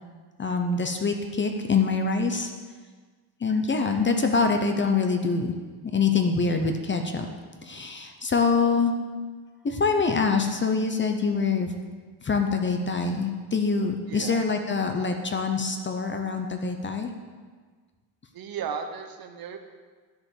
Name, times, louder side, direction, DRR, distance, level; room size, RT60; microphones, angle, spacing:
voice 1, 0.4-2.5 3.4-5.5 5.9-7.3 7.6-8.9 9.6-11.7 12.2-17.1, left 4 dB, 25° left, 5 dB, 0.6 m, -25 dB
voice 2, 14.1-14.4 18.3-19.6, right 6 dB, 55° right, 6 dB, 0.9 m, -35 dB
10.5 x 5.0 x 7.1 m, 1.5 s
wide cardioid pair, 165°, 43 cm